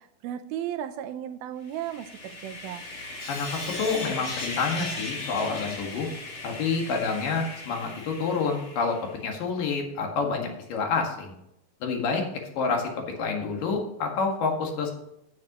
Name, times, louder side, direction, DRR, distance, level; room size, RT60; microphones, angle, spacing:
voice 1, 0.0-2.8, right 10 dB, 90° right, 8 dB, 2.7 m, -35 dB
Sawing, 1.7-9.1, left 2 dB, 50° left, 0.8 m, -37 dB
voice 2, 3.8-6.1 6.4-9.0 9.2-11.3 11.8-12.2 12.6-12.9 13.2-14.9, left 4 dB, 70° left, 2 dB, 3.4 m, -28 dB
10.5 x 9.9 x 3.0 m, 0.83 s
omnidirectional pair, 4.2 m